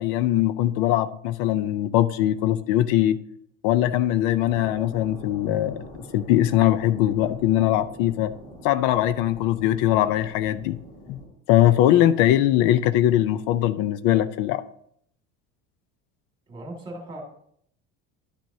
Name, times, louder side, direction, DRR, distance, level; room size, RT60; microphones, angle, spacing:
voice 1, 0.0-3.2 3.6-5.9 6.1-8.3 8.6-10.8 11.1-11.2 11.5-14.6, left 13 dB, 70° left, 14 dB, 0.5 m, -21 dB
sound 1, 4.4-11.3, equal, 10° left, 2.7 m, -44 dB
voice 2, 16.5-17.2, right 1 dB, 15° right, 0 dB, 1.8 m, -37 dB
11.5 x 6.1 x 2.7 m, 0.68 s
cardioid pair, 165°, 34 cm